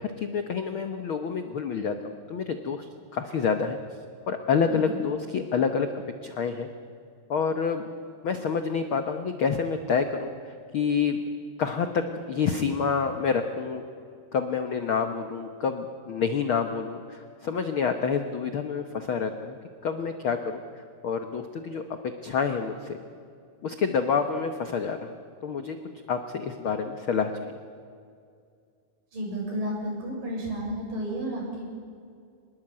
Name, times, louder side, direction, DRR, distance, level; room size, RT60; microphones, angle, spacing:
voice 1, 0.0-1.9 2.3-3.8 4.3-6.7 7.3-7.8 8.2-11.2 11.6-13.8 14.3-19.6 19.8-21.8 22.2-23.0 23.6-25.2 25.4-25.8 26.1-27.6, left 6 dB, 70° left, 7 dB, 1.2 m, -28 dB
voice 2, 29.1-31.7, right 1 dB, 75° right, -1 dB, 8.0 m, -32 dB
24.5 x 20.5 x 8.7 m, 2.3 s
omnidirectional pair, 3.9 m